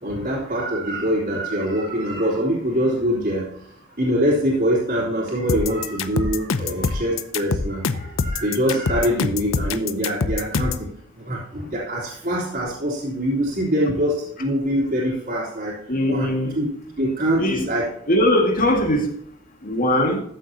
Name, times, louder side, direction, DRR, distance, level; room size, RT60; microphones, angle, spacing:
voice 1, 0.0-3.4 4.0-10.9 11.3-15.7 16.1-16.3 16.5-16.7 17.0-17.9, equal, 45° right, -5 dB, 3.3 m, -24 dB
sound 1, 5.5-10.9, left 4 dB, 80° left, 0.7 m, -24 dB
voice 2, 15.9-16.5 17.4-17.7 18.1-19.1 19.6-20.2, left 1 dB, 45° left, 3 dB, 2.0 m, -20 dB
13.5 x 7.7 x 2.9 m, 0.67 s
head